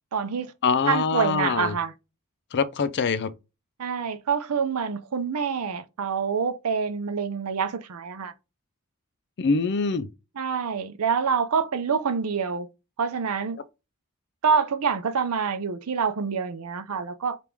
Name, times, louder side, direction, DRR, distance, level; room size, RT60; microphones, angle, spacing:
voice 1, 0.1-0.5 0.9-1.9 3.8-8.3 10.4-12.7 13.0-13.6 14.4-17.4, right 6 dB, 75° right, 0.6 m, -26 dB
voice 2, 0.6-1.8 2.5-3.3 9.4-10.1, left 4 dB, 50° left, 0.5 m, -24 dB
3.5 x 2.5 x 4.5 m
head